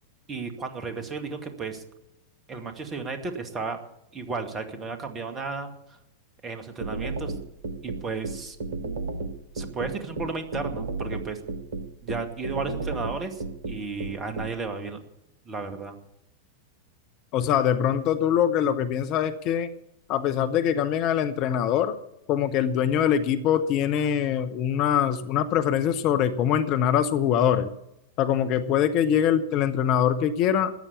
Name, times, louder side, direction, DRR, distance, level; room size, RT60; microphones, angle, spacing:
voice 1, 0.3-1.8 2.5-3.8 4.1-5.7 6.4-7.3 7.8-8.6 9.5-11.4 12.0-15.0 15.5-16.0, right 4 dB, 25° right, 7 dB, 2.2 m, -33 dB
sound 1, 6.8-14.5, right 3 dB, 65° right, 1.5 m, -32 dB
voice 2, 17.3-19.7 20.1-21.9 22.3-27.7 28.2-30.7, left 9 dB, 40° left, 10 dB, 1.0 m, -23 dB
14.5 x 9.9 x 8.4 m, 0.83 s
figure-of-eight pair, 90°, 0 cm